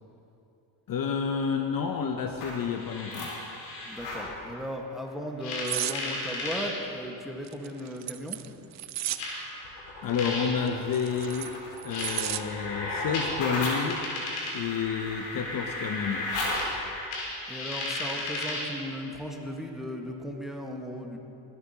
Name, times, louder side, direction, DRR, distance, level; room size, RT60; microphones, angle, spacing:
voice 1, 0.9-3.3 10.0-11.5 11.8-14.1 14.5-16.5, left 6 dB, 45° left, 5 dB, 0.8 m, -30 dB
sound 1, 2.3-4.3 5.4-6.7 7.8-7.9 9.2-18.8, left 2 dB, 90° left, 2.4 m, -34 dB
voice 2, 3.8-8.4 17.5-21.2, equal, ahead, 1 dB, 1.5 m, -36 dB
sound 2, 5.7-6.0 7.4-9.3 10.7-12.4 12.8-13.1, right 13 dB, 40° right, 0.4 m, -33 dB
22.0 x 8.3 x 2.9 m, 2.8 s
supercardioid pair, 70°, 47 cm